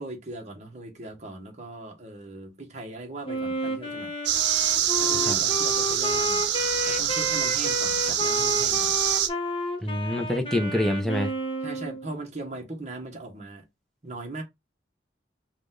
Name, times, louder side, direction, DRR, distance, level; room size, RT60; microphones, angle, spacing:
voice 1, 0.0-4.1 5.0-6.5 6.9-9.0 11.6-13.6 14.0-14.4, right 2 dB, 40° right, 1.3 m, -39 dB
Wind instrument woodwind instrument, 3.2-12.1, equal, 30° left, 0.9 m, -31 dB
sound 1, 4.3-9.3, right 10 dB, 80° right, 0.7 m, -25 dB
voice 2, 9.8-11.3, left 1 dB, ahead, 0.7 m, -26 dB
5.1 x 2.5 x 3.8 m
head